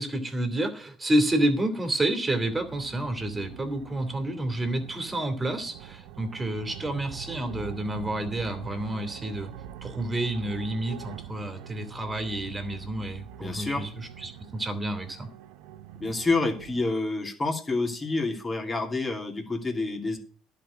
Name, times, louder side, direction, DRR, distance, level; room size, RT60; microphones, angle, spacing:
voice 1, 0.0-9.5 9.8-15.3, right 1 dB, 20° right, 7 dB, 2.6 m, -29 dB
sound 1, 2.3-16.9, right 9 dB, 80° right, 0.7 m, -44 dB
voice 2, 13.4-13.8 16.0-20.2, left 3 dB, 25° left, 3 dB, 2.7 m, -28 dB
11.0 x 5.1 x 8.4 m, 0.40 s
supercardioid pair, 85°, 0 cm